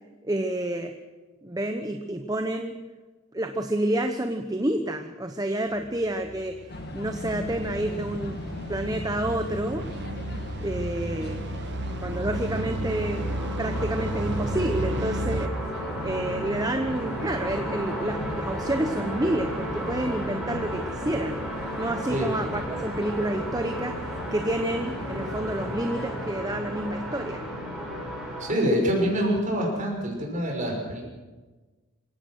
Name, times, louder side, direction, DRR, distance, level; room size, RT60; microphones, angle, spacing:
voice 1, 0.2-0.9 1.4-2.8 3.3-8.4 8.7-9.9 10.6-11.4 12.0-13.3 13.6-15.5 16.0-21.4 21.8-27.4, right 1 dB, 15° right, 6 dB, 0.9 m, -29 dB
sound 1, 5.8-15.5, right 1 dB, 50° right, 1.0 m, -33 dB
sound 2, 6.7-26.3, left 1 dB, 45° left, 1.7 m, -39 dB
sound 3, 11.4-28.5, equal, ahead, 5.9 m, -34 dB
voice 2, 28.4-31.0, equal, 35° right, 0 dB, 5.9 m, -25 dB
26.5 x 16.0 x 6.5 m, 1.3 s
head